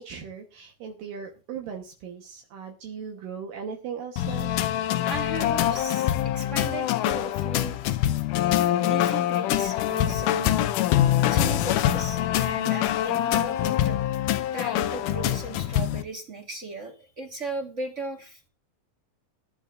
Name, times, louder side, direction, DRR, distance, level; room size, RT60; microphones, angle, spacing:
voice 1, 0.0-4.5, right 6 dB, 75° right, 1 dB, 2.9 m, -38 dB
sound 1, 4.2-16.0, left 12 dB, 75° left, 2.1 m, -24 dB
voice 2, 5.0-8.1 8.7-10.7 11.3-14.0 14.5-18.5, right 2 dB, 45° right, 3 dB, 0.9 m, -37 dB
19.5 x 10.5 x 2.6 m, 0.33 s
omnidirectional pair, 4.1 m